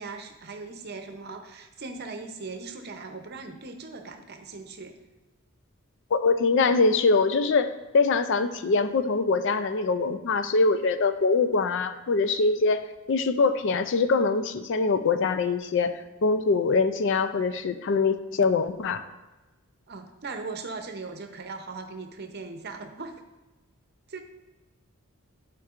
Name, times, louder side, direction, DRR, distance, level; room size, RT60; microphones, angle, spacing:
voice 1, 0.0-4.9 19.9-23.2 24.1-24.2, right 3 dB, 50° right, 5 dB, 0.7 m, -39 dB
voice 2, 6.1-12.8 13.1-19.0, left 4 dB, 55° left, 11 dB, 0.4 m, -23 dB
11.0 x 4.5 x 2.5 m, 1.1 s
head